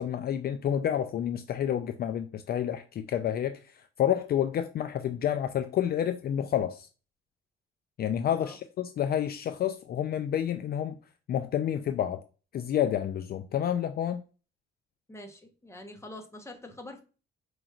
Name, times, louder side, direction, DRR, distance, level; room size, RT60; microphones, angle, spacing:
voice 1, 0.0-6.9 8.0-11.0 11.3-12.2 12.5-14.2, left 10 dB, 50° left, 0.4 m, -29 dB
voice 2, 15.1-17.0, left 1 dB, 15° left, 1.0 m, -45 dB
5.0 x 3.1 x 2.4 m
cardioid pair, 90°, 20 cm